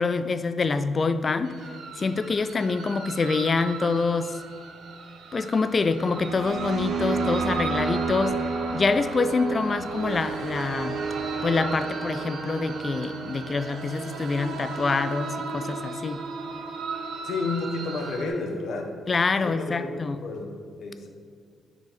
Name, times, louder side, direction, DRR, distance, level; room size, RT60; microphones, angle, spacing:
voice 1, 0.0-1.6 2.0-4.4 5.3-8.3 8.7-11.0 11.4-16.2 19.1-20.2, left 4 dB, 30° left, 11 dB, 0.3 m, -26 dB
sound 1, 1.5-18.3, right 4 dB, 75° right, 0.7 m, -32 dB
voice 2, 17.2-19.0 19.4-19.9 20.2-20.5 20.8-21.1, left 3 dB, 65° left, 3 dB, 0.9 m, -31 dB
6.8 x 4.8 x 4.1 m, 2.1 s
cardioid pair, 140°, 0 cm